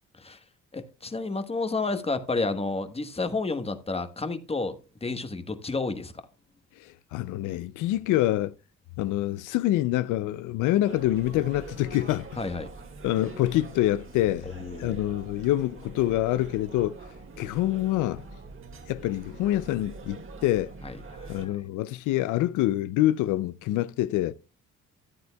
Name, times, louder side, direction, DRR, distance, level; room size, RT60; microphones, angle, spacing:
voice 1, 0.7-6.2 12.4-12.7 14.6-15.0 20.8-21.6, left 3 dB, 20° left, 1.2 m, -31 dB
voice 2, 6.8-8.5 9.0-12.3 13.0-14.5 14.8-17.0 17.4-18.2 18.9-20.7 21.3-24.3, left 14 dB, 90° left, 0.5 m, -26 dB
sound 1, 10.9-21.4, right 3 dB, 45° right, 2.0 m, -44 dB
14.0 x 9.4 x 2.2 m
cardioid pair, 90°, 30 cm